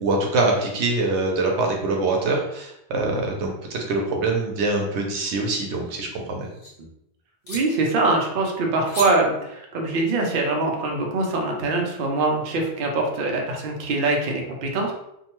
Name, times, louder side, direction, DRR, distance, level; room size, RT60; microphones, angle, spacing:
voice 1, 0.0-6.5, right 2 dB, 85° right, 1 dB, 0.9 m, -24 dB
sound 1, 5.7-6.7 7.4-7.6 8.9-9.1, left 1 dB, 70° left, 1.3 m, -36 dB
voice 2, 7.5-14.9, right 2 dB, 60° right, 0 dB, 0.7 m, -23 dB
2.7 x 2.2 x 2.9 m, 0.80 s
omnidirectional pair, 1.1 m